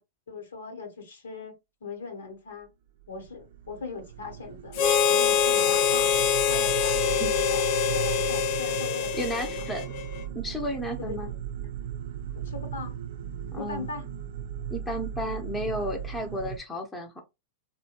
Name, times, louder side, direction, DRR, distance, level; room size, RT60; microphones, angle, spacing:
voice 1, 0.3-2.7 3.1-6.1 6.5-9.8 11.0-11.4 12.4-12.9 13.5-14.1, left 4 dB, 75° left, 1.0 m, -39 dB
sound 1, 3.0-16.6, right 9 dB, 60° right, 0.5 m, -37 dB
Harmonica, 4.7-10.2, left 7 dB, 50° left, 0.3 m, -25 dB
voice 2, 9.1-9.9 10.3-11.3 13.5-13.9 14.7-17.2, equal, 10° left, 0.7 m, -33 dB
2.7 x 2.2 x 2.9 m
hypercardioid pair, 105°, 0 cm